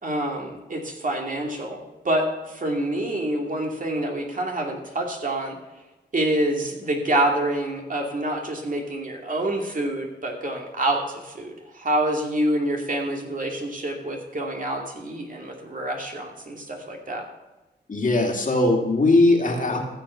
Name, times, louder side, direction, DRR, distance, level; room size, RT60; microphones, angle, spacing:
voice 1, 0.0-5.5 6.1-17.3, right 1 dB, 45° right, 1 dB, 2.5 m, -27 dB
voice 2, 17.9-19.8, left 2 dB, 45° left, 1 dB, 2.5 m, -20 dB
15.0 x 7.0 x 5.8 m, 1.1 s
cardioid pair, 70°, 18 cm